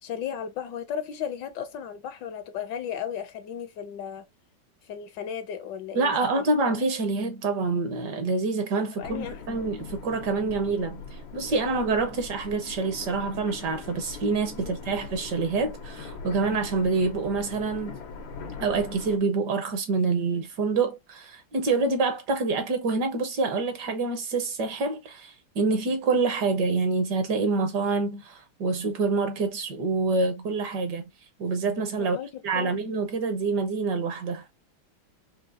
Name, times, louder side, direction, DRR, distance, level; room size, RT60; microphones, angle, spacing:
voice 1, 0.0-4.3 4.8-6.4 9.0-9.7 14.5-14.8 32.0-32.8, left 8 dB, 75° left, 1.2 m, -35 dB
voice 2, 5.9-18.0 18.6-31.1 31.4-32.2 32.4-34.4, right 3 dB, 60° right, 1.5 m, -26 dB
sound 1, 9.0-19.2, left 4 dB, 90° left, 1.8 m, -41 dB
5.0 x 2.7 x 2.5 m
omnidirectional pair, 2.1 m